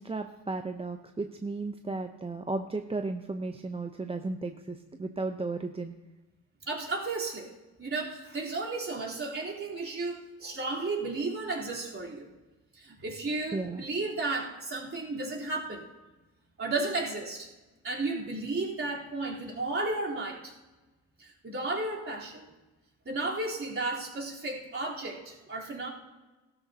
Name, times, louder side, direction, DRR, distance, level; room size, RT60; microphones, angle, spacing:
voice 1, 0.0-5.9 13.5-13.8, right 3 dB, 15° right, 6 dB, 0.7 m, -34 dB
voice 2, 6.7-7.5 7.8-12.3 12.8-15.9 16.6-17.5 17.8-20.5 21.2-22.5 23.1-25.9, right 3 dB, 35° right, -4 dB, 3.6 m, -33 dB
16.5 x 12.5 x 2.8 m, 1.2 s
supercardioid pair, 70°, 37 cm